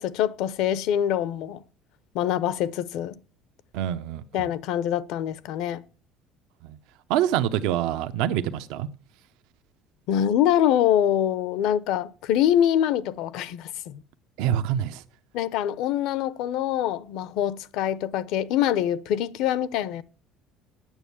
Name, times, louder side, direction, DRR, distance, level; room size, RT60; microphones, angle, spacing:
voice 1, 0.0-1.6 2.1-3.2 4.3-5.8 10.1-14.0 15.3-20.0, left 10 dB, 70° left, 0.6 m, -24 dB
voice 2, 3.7-4.5 6.7-6.8 7.1-8.9 14.4-15.0, right 11 dB, 80° right, 0.7 m, -26 dB
9.0 x 7.1 x 8.4 m
cardioid pair, 150°, 0 cm